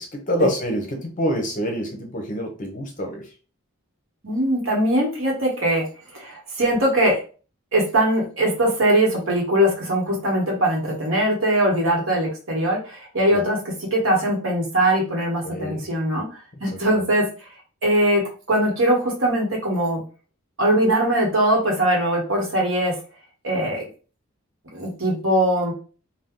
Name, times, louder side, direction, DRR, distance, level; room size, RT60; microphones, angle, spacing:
voice 1, 0.0-3.3 13.3-13.4 15.4-15.9 16.7-16.8, equal, 35° left, 3 dB, 0.6 m, -26 dB
voice 2, 4.2-5.8 6.1-7.2 7.7-13.6 13.9-16.3 16.6-17.3 17.8-20.0 20.6-22.9 23.4-23.8 24.7-25.7, right 1 dB, 65° right, -1 dB, 1.2 m, -21 dB
2.7 x 2.2 x 3.6 m, 0.36 s
head